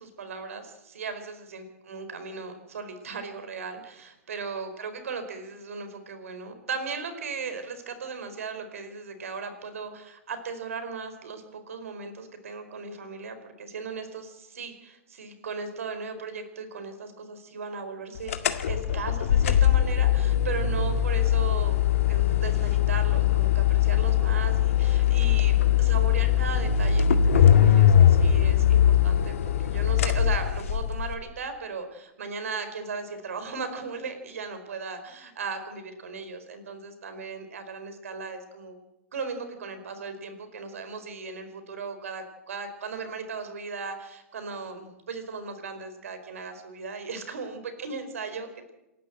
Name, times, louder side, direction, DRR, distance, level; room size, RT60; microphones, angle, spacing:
voice 1, 0.0-18.4 18.7-21.8 22.1-38.8 39.1-48.7, right 5 dB, 75° right, 9 dB, 4.5 m, -37 dB
sound 1, 18.3-31.1, left 10 dB, 70° left, 2.1 m, -21 dB
27.5 x 12.0 x 7.9 m, 0.98 s
hypercardioid pair, 115°, 8 cm